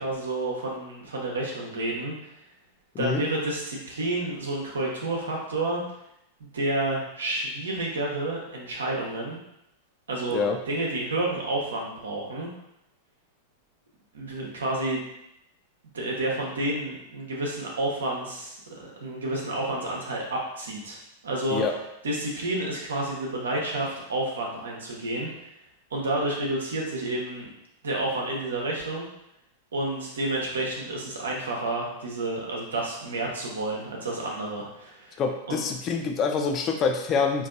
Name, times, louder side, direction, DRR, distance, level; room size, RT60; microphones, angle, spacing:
voice 1, 0.0-2.1 3.0-5.8 6.4-9.4 10.1-12.5 14.1-15.0 15.9-21.0 21.2-21.6 22.0-25.3 25.9-27.5 27.8-29.1 29.7-35.2 35.5-35.6, right 2 dB, 85° right, -2 dB, 1.0 m, -30 dB
voice 2, 35.2-37.5, left 5 dB, 35° left, 4 dB, 0.6 m, -26 dB
4.4 x 2.7 x 2.6 m, 0.82 s
hypercardioid pair, 105°, 0 cm